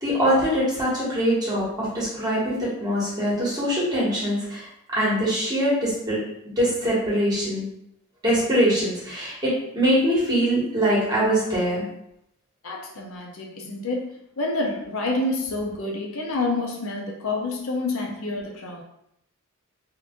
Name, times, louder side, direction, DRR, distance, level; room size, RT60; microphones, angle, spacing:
voice 1, 0.0-6.2 6.6-7.6 8.2-11.9, equal, 20° right, -7 dB, 1.3 m, -23 dB
voice 2, 12.6-18.8, left 2 dB, 65° left, -1 dB, 0.6 m, -28 dB
2.9 x 2.5 x 3.6 m, 0.77 s
head